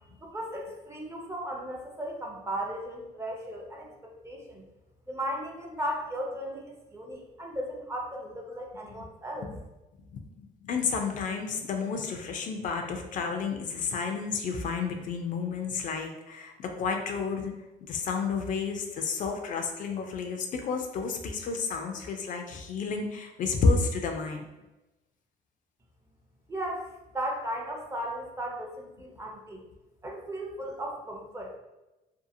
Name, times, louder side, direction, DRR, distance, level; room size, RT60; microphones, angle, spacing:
voice 1, 0.2-4.6 5.1-9.5 26.5-29.6 30.0-31.6, right 1 dB, 15° right, 0 dB, 0.5 m, -36 dB
voice 2, 10.1-17.5 17.8-24.5, left 4 dB, 50° left, 4 dB, 0.4 m, -31 dB
2.7 x 2.3 x 2.6 m, 1.0 s
cardioid pair, 110°, 17 cm